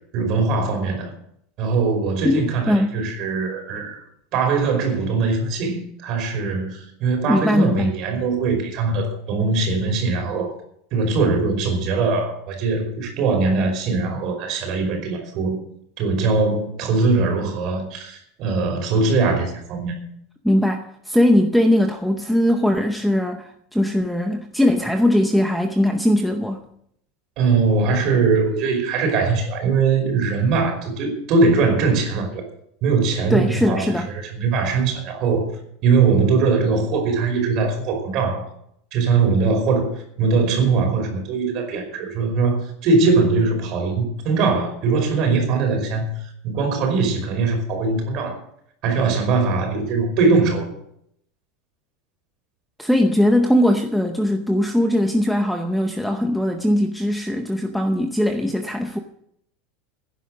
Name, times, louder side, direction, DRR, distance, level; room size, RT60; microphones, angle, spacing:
voice 1, 0.1-1.1 1.6-4.0 4.3-10.5 10.9-15.6 16.0-20.0 27.4-32.4 32.8-35.5 35.8-38.4 38.9-39.9 40.2-46.1 46.4-48.4 48.8-50.8, right 4 dB, 35° right, 3 dB, 5.2 m, -21 dB
voice 2, 2.2-3.0 7.3-7.9 20.4-26.6 33.3-34.1 52.8-59.0, left 1 dB, ahead, 5 dB, 0.7 m, -20 dB
16.0 x 10.5 x 6.5 m, 0.71 s
supercardioid pair, 180°, 0 cm